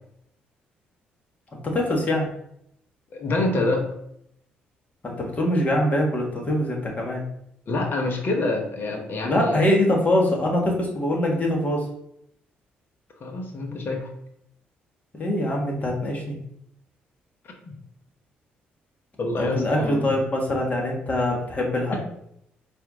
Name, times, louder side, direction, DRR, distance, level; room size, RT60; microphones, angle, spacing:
voice 1, 1.6-2.3 5.0-7.3 9.2-11.9 15.2-16.3 19.4-22.0, left 1 dB, 35° left, -1 dB, 1.5 m, -23 dB
voice 2, 3.1-3.9 7.7-9.7 13.2-14.1 17.6-17.7 19.2-20.1 21.9-22.0, left 2 dB, 55° left, 2 dB, 1.0 m, -26 dB
4.4 x 2.7 x 3.6 m, 0.73 s
hypercardioid pair, 55°, 4 cm